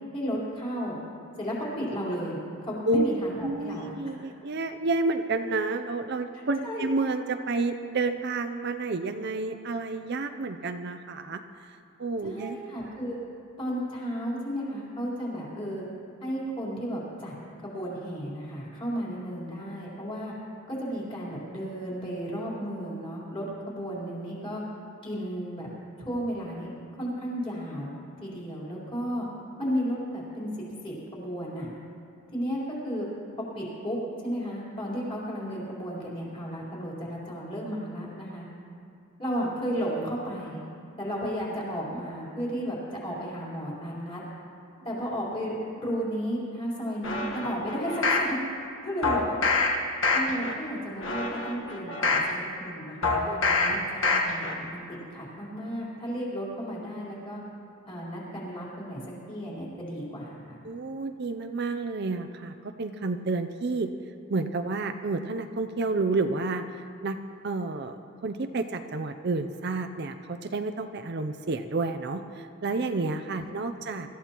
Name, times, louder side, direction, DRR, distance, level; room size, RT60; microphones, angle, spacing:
voice 1, 0.1-1.0 1.4-4.2 6.6-6.9 12.2-13.2 13.6-15.8 16.2-17.3 17.6-20.3 20.7-24.6 25.0-25.7 26.0-26.7 27.0-27.9 28.2-29.3 29.6-30.5 30.8-31.7 32.3-33.1 33.5-34.0 34.2-38.4 39.2-40.6 41.0-44.2 44.8-48.4 48.8-49.4 50.1-53.4 53.7-57.4 57.9-59.0 59.3-60.6 73.4-73.5, equal, 25° left, -6 dB, 4.1 m, -33 dB
voice 2, 3.4-11.4 12.0-12.6 49.2-49.5 53.3-53.8 54.1-54.2 60.6-63.9 64.3-66.6 67.0-67.2 67.4-74.1, right 3 dB, 45° right, 7 dB, 0.5 m, -30 dB
sound 1, 47.0-48.3 49.0-49.7 50.0-50.5 51.0-52.3 53.0-53.7 54.0-54.5 54.9-55.0, left 3 dB, 60° left, 1.5 m, -26 dB
25.0 x 14.0 x 3.0 m, 2.5 s
head